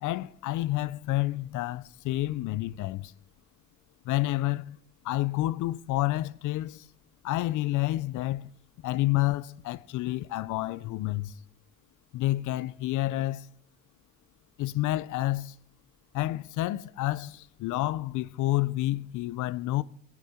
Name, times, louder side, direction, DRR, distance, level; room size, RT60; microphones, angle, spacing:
voice 1, 0.0-3.1 4.1-4.8 5.0-6.9 7.2-8.5 8.8-11.3 12.1-13.5 14.6-15.5 16.1-19.8, left 16 dB, 80° left, 0.5 m, -29 dB
16.0 x 8.5 x 4.3 m
cardioid pair, 90°, 30 cm